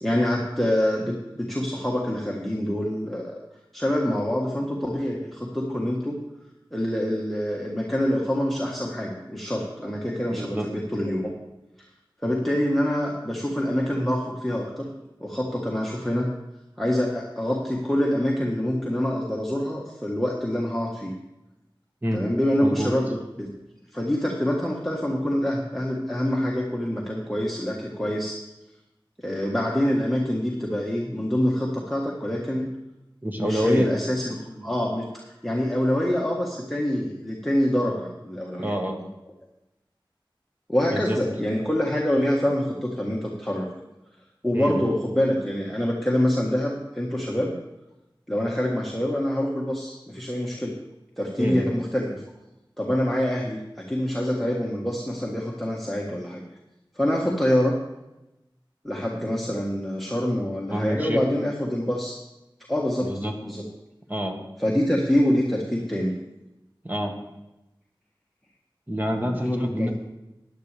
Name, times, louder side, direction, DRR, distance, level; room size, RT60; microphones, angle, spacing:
voice 1, 0.0-3.3 3.7-6.2 6.7-11.3 12.2-14.9 15.2-16.3 16.8-21.1 22.1-23.0 23.4-23.5 23.9-28.4 29.2-32.7 33.4-35.0 35.4-38.7 40.7-43.7 44.4-47.5 48.3-50.7 51.2-52.2 52.8-56.4 56.9-57.7 58.8-62.1 62.7-63.1 63.4-63.6 64.6-66.1 69.2-69.9, equal, ahead, -3 dB, 1.6 m, -25 dB
voice 2, 10.3-10.7 22.0-22.2 22.6-22.9 33.2-33.9 38.6-39.0 40.9-41.2 44.5-44.8 51.4-51.7 60.7-61.2 63.0-63.3 64.1-64.4 66.8-67.1 68.9-69.9, equal, 20° right, 2 dB, 1.6 m, -27 dB
14.5 x 10.5 x 3.4 m, 0.96 s
wide cardioid pair, 50°, 9 cm